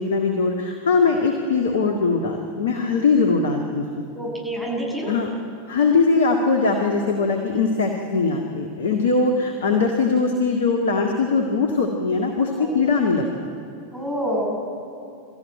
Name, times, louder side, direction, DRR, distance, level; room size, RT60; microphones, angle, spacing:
voice 1, 0.0-4.0 5.1-5.3 5.7-13.5, left 4 dB, 65° left, 2 dB, 1.9 m, -21 dB
voice 2, 4.1-5.1 12.6-12.7 13.9-14.6, equal, 5° right, -5 dB, 7.8 m, -27 dB
25.5 x 14.0 x 9.2 m, 2.6 s
figure-of-eight pair, 90°, 0 cm